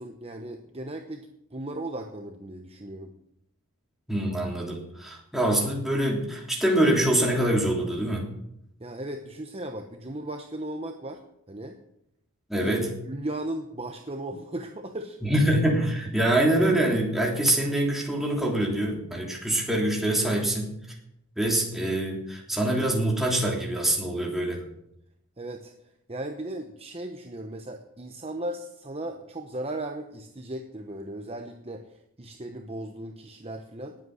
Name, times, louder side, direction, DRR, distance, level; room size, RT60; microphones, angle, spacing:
voice 1, 0.0-3.1 8.8-11.2 11.5-11.8 12.6-15.2 25.4-25.7 26.1-34.0, right 1 dB, 25° right, 4 dB, 1.0 m, -36 dB
voice 2, 4.1-8.2 12.5-12.9 15.2-20.7 21.4-24.6, right 1 dB, ahead, -2 dB, 3.2 m, -25 dB
19.5 x 8.2 x 6.6 m, 0.79 s
head